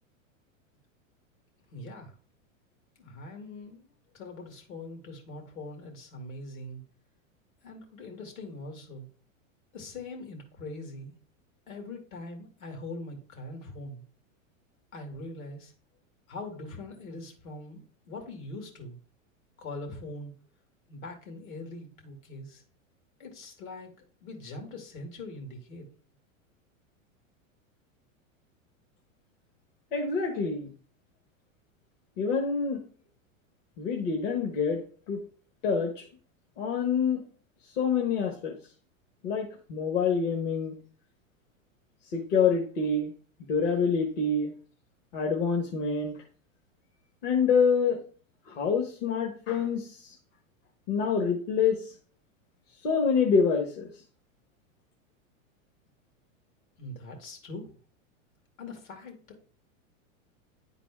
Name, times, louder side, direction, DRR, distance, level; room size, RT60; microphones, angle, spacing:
voice 1, 1.7-2.1 3.0-3.9 4.1-6.8 7.6-9.1 9.7-11.1 11.7-14.0 14.9-15.7 16.3-18.9 19.6-20.3 20.9-22.6 23.2-23.9 24.2-25.9 56.8-57.7 58.6-59.5, left 2 dB, 80° left, 3 dB, 2.5 m, -42 dB
voice 2, 29.9-30.7 32.2-32.8 33.8-34.8 35.1-35.2 35.6-35.9 36.6-37.2 37.8-38.5 39.2-40.7 42.1-43.1 43.5-44.5 45.1-46.1 47.2-48.0 48.5-50.0 50.9-51.9 52.8-53.9, left 5 dB, 65° left, 2 dB, 1.4 m, -26 dB
9.9 x 4.1 x 3.5 m, 0.42 s
hypercardioid pair, 115°, 40 cm